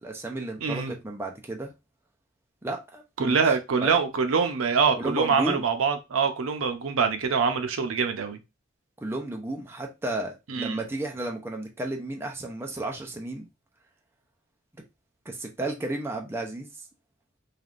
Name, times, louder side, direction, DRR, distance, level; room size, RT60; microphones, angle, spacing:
voice 1, 0.0-1.7 2.6-3.4 3.8-4.0 5.0-5.6 9.0-13.5 15.3-16.7, right 2 dB, 10° right, 0.5 m, -33 dB
voice 2, 0.6-0.9 3.2-8.4 10.5-10.8, right 5 dB, 85° right, 0.5 m, -24 dB
3.3 x 2.4 x 2.4 m
head